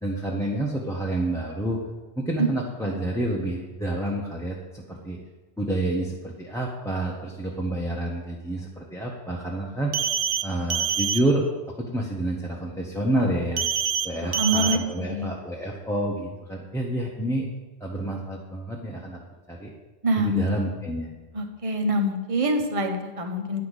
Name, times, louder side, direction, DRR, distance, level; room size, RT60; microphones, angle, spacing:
voice 1, 0.0-1.8 2.2-5.2 5.6-9.9 10.4-11.4 11.8-13.7 14.0-17.5 17.8-19.2 19.5-19.7 20.2-21.1, right 1 dB, 5° left, -2 dB, 1.0 m, -28 dB
sound 1, 9.9-10.4 10.7-11.2 13.6-14.1 14.3-14.8, right 7 dB, 90° right, 1.0 m, -25 dB
voice 2, 14.2-15.3 20.0-20.5 21.3-23.6, equal, 30° right, 5 dB, 1.0 m, -25 dB
10.5 x 5.7 x 8.2 m, 1.3 s
omnidirectional pair, 1.2 m